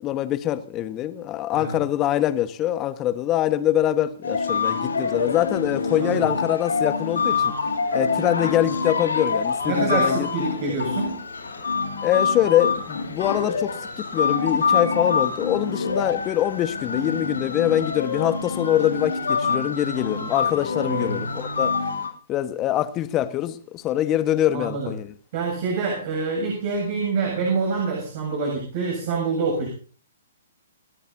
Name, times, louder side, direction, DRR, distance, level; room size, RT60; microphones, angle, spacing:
voice 1, 0.0-7.5 7.9-10.3 12.0-21.8 22.3-25.1, left 12 dB, 25° left, 1.4 m, -24 dB
sound 1, 4.2-22.1, left 5 dB, 80° left, 7.0 m, -26 dB
voice 2, 9.6-11.2 20.8-21.2 24.5-24.9 25.3-29.7, right 4 dB, 45° right, 7.9 m, -26 dB
29.5 x 13.0 x 2.8 m
figure-of-eight pair, 120°, 0 cm